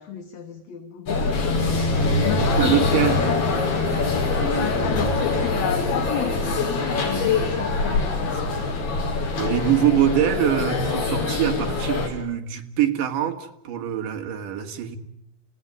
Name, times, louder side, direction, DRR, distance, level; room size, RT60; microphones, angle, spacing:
voice 1, 0.0-1.8 2.2-3.4 4.5-8.3, left 9 dB, 55° left, 2.3 m, -32 dB
sound 1, 1.1-12.1, left 3 dB, 80° left, 6.6 m, -23 dB
voice 2, 2.4-3.2 8.6-9.1 9.4-15.0, right 11 dB, 60° right, 3.3 m, -24 dB
30.0 x 17.5 x 9.6 m
omnidirectional pair, 4.5 m